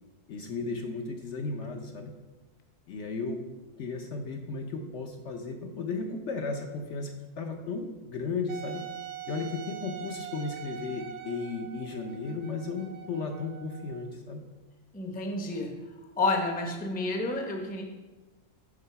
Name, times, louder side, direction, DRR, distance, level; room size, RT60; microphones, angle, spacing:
voice 1, 0.3-2.1 2.9-3.4 3.8-8.8 9.3-14.4, left 4 dB, 60° left, 3 dB, 0.9 m, -35 dB
Wind instrument woodwind instrument, 8.5-14.1, right 9 dB, 80° right, 1.1 m, -43 dB
voice 2, 14.9-15.7 16.2-17.8, left 2 dB, 10° left, 2 dB, 0.6 m, -30 dB
8.8 x 3.8 x 5.6 m, 1.2 s
omnidirectional pair, 1.6 m